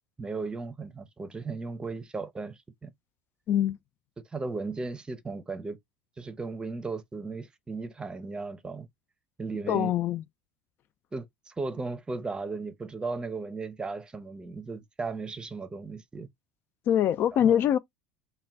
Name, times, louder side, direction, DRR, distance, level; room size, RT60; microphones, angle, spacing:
voice 1, 0.2-2.9 4.3-5.8 6.2-8.9 9.4-9.9 11.1-16.3 17.3-17.6, right 3 dB, 20° right, 0.7 m, -36 dB
voice 2, 9.7-10.2 16.9-17.8, left 10 dB, 50° left, 0.3 m, -23 dB
3.7 x 2.2 x 4.5 m
hypercardioid pair, 85°, 5 cm